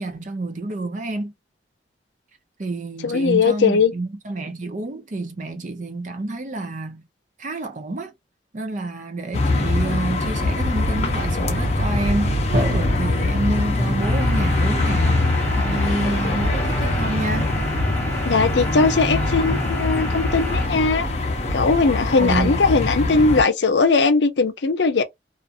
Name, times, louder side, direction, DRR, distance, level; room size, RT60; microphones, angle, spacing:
voice 1, 0.0-1.3 2.6-7.0 7.4-8.1 8.5-15.2 15.5-17.6 22.2-22.6, right 2 dB, 45° right, 0.6 m, -28 dB
voice 2, 3.0-3.9 18.2-21.0 21.5-25.0, left 4 dB, 75° left, 0.5 m, -19 dB
sound 1, 9.3-23.4, left 2 dB, 35° left, 0.6 m, -22 dB
Drum, 12.5-14.4, right 1 dB, 70° right, 0.9 m, -28 dB
sound 2, 14.0-20.7, right 1 dB, 10° left, 0.9 m, -32 dB
2.5 x 2.4 x 2.5 m
head